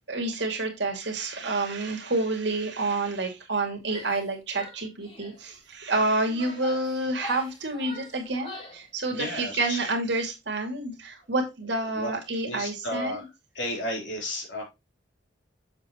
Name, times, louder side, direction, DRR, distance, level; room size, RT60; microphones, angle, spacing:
voice 1, 0.1-13.2, right 2 dB, 65° right, 3 dB, 2.5 m, -29 dB
Female speech woman speaking / Yell, 3.8-4.3 4.5-5.4 6.0-8.9, left 1 dB, 30° left, 3.8 m, -43 dB
voice 2, 9.1-9.8 12.0-12.1 12.4-13.2 13.5-14.6, left 1 dB, 75° left, 0 dB, 3.8 m, -33 dB
7.6 x 7.2 x 3.0 m, 0.23 s
head